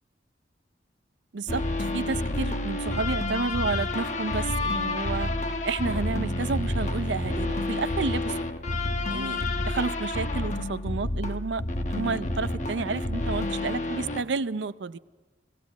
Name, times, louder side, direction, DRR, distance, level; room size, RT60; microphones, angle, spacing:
voice 1, 1.3-5.3 5.6-8.4 9.1-11.6 11.9-15.0, right 4 dB, 80° right, 15 dB, 0.6 m, -31 dB
sound 1, 1.5-14.2, left 2 dB, 40° left, 1.1 m, -29 dB
19.0 x 17.0 x 8.2 m, 1.3 s
head